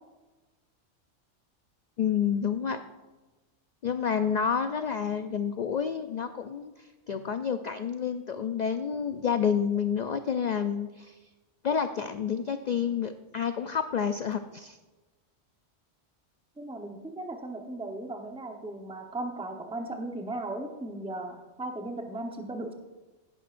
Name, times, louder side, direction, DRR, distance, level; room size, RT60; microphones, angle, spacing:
voice 1, 2.0-2.8 3.8-11.2 11.6-14.8, left 7 dB, 65° left, 9 dB, 0.4 m, -29 dB
voice 2, 16.6-22.7, right 2 dB, 5° right, 3 dB, 0.8 m, -37 dB
16.5 x 9.8 x 2.5 m, 1.2 s
omnidirectional pair, 1.2 m